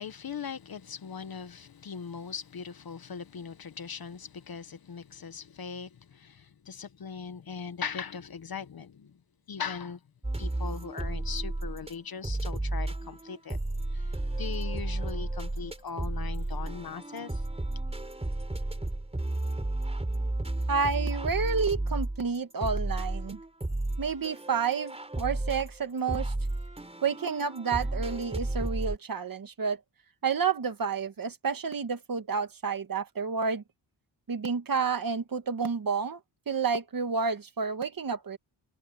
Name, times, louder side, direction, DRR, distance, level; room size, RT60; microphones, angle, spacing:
voice 1, 0.0-9.2 9.5-10.0 10.4-13.6 13.9-17.4, left 6 dB, 50° left, 1.1 m, -40 dB
sound 1, 10.2-11.9 12.2-29.0, right 2 dB, 15° right, 4.0 m, -33 dB
voice 2, 20.7-23.4 24.0-26.3 27.0-29.8 30.2-33.6 34.3-36.2 36.5-38.4, right 5 dB, 45° right, 1.7 m, -30 dB
wide cardioid pair, 170°, 46 cm